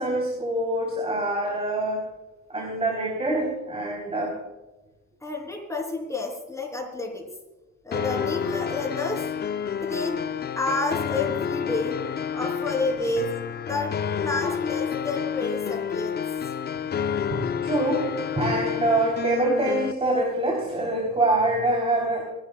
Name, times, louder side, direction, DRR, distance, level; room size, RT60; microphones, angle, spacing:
voice 1, 0.0-2.1 2.5-4.4 17.3-22.2, right 1 dB, 20° right, -1 dB, 3.6 m, -25 dB
voice 2, 5.2-7.3 7.8-9.2 9.8-10.2 10.6-11.9 12.3-13.3 13.6-16.2, left 2 dB, 10° left, 0 dB, 3.6 m, -30 dB
sound 1, 7.9-19.9, left 7 dB, 35° left, 0.5 m, -29 dB
27.0 x 11.5 x 2.4 m, 1.1 s
cardioid pair, 135°, 30 cm